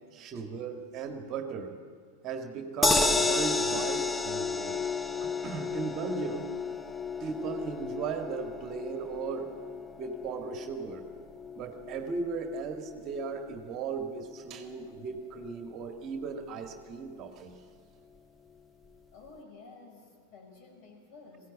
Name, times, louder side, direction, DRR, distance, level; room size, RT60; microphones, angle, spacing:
voice 1, 0.0-1.7 2.2-4.8 5.2-6.5 7.2-9.5 10.0-11.1 11.6-17.6, right 5 dB, 35° right, 6 dB, 1.8 m, -37 dB
sound 1, 2.8-15.1 15.4-15.5 15.8-15.9, left 3 dB, 10° left, 0.9 m, -33 dB
voice 2, 19.1-21.5, left 3 dB, 40° left, 3 dB, 5.3 m, -52 dB
21.5 x 16.5 x 8.6 m, 2.1 s
figure-of-eight pair, 90°, 0 cm